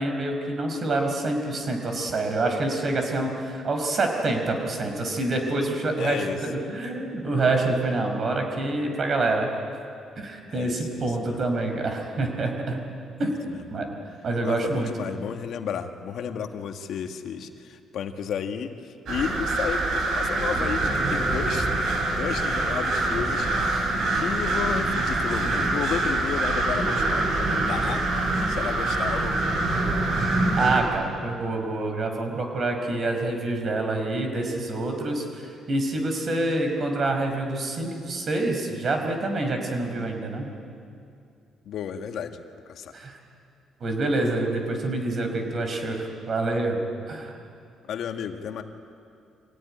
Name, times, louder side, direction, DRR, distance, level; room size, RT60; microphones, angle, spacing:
voice 1, 0.0-9.5 10.2-12.8 13.2-13.3 13.7-13.9 14.2-14.9 30.6-40.5 42.9-43.2 43.8-46.8 47.1-47.3, right 2 dB, 45° right, 4 dB, 5.0 m, -27 dB
voice 2, 6.0-6.4 10.5-11.4 13.5-13.6 14.4-28.0 28.5-29.5 41.7-42.4 42.7-42.9 47.9-48.6, left 7 dB, 65° left, 6 dB, 1.6 m, -33 dB
sound 1, 19.1-30.8, right 2 dB, 65° right, 5.4 m, -25 dB
25.0 x 17.0 x 10.0 m, 2.4 s
cardioid pair, 115°, 0 cm